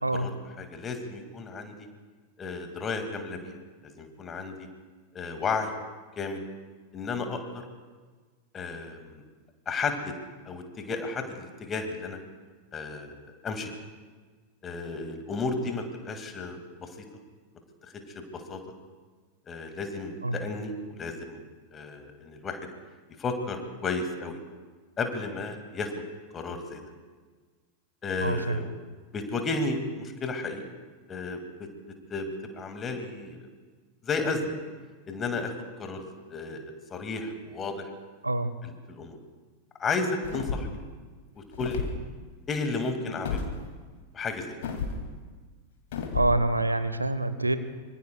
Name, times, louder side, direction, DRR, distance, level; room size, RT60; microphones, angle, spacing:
voice 1, 0.6-1.9 2.4-3.5 3.8-4.7 5.1-5.7 6.2-6.4 6.9-7.4 8.5-9.2 9.7-10.1 10.5-12.2 12.7-13.2 13.4-13.7 14.6-16.9 18.1-18.6 19.5-21.4 21.7-22.6 23.2-24.4 25.0-25.9 26.3-26.8 28.0-28.7 29.1-30.6 31.1-31.7 32.1-32.3 32.5-33.5 34.0-34.5 35.1-35.5 35.8-37.9 38.6-39.2 39.8-40.8 41.4-41.8 42.5-43.4 44.1-44.6, left 3 dB, 25° left, 6 dB, 2.2 m, -33 dB
voice 2, 28.2-28.6 38.2-38.6 46.1-47.6, right 2 dB, 85° right, 12 dB, 0.8 m, -26 dB
sound 1, 40.2-40.8 41.5-41.9 43.2-43.5 44.6-45.0 45.9-46.3, left 5 dB, 55° left, 2.4 m, -31 dB
25.5 x 24.5 x 2.3 m, 1.4 s
figure-of-eight pair, 90°, 0 cm